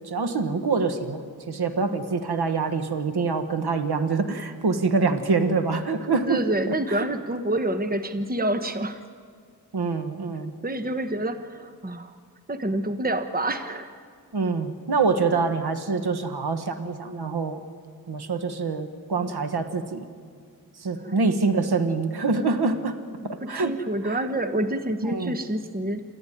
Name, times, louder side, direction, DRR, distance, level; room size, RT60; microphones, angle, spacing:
voice 1, 0.0-1.2 1.5-6.4 6.7-7.1 9.7-10.5 14.3-17.6 18.1-20.1 20.8-23.0 23.2-23.8 24.0-24.2 25.1-25.4, right 4 dB, 90° right, 9 dB, 1.3 m, -25 dB
voice 2, 6.3-9.0 10.6-12.1 12.5-14.0 21.0-21.2 23.2-26.0, right 1 dB, 25° right, 9 dB, 1.2 m, -28 dB
28.0 x 14.0 x 9.9 m, 2.1 s
cardioid pair, 50°, 38 cm